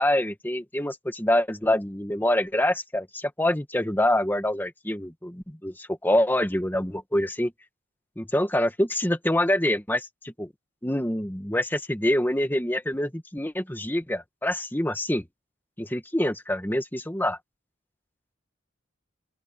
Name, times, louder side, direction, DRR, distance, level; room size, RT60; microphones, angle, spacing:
voice 1, 0.0-7.5 8.2-10.5 10.8-15.3 15.8-17.4, left 1 dB, 10° left, 1.8 m, -26 dB
open air
head